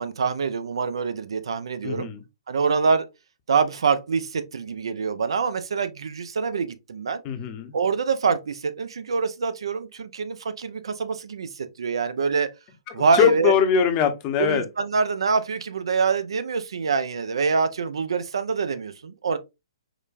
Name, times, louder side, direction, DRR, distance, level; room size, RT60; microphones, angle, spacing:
voice 1, 0.0-2.1 2.5-3.1 3.5-7.2 7.7-12.5 12.9-13.5 14.4-19.4, right 5 dB, 70° right, 0.5 m, -25 dB
voice 2, 1.8-2.2 7.2-7.7 13.1-14.6, left 8 dB, 30° left, 0.7 m, -21 dB
4.8 x 2.2 x 2.4 m
figure-of-eight pair, 130°, 3 cm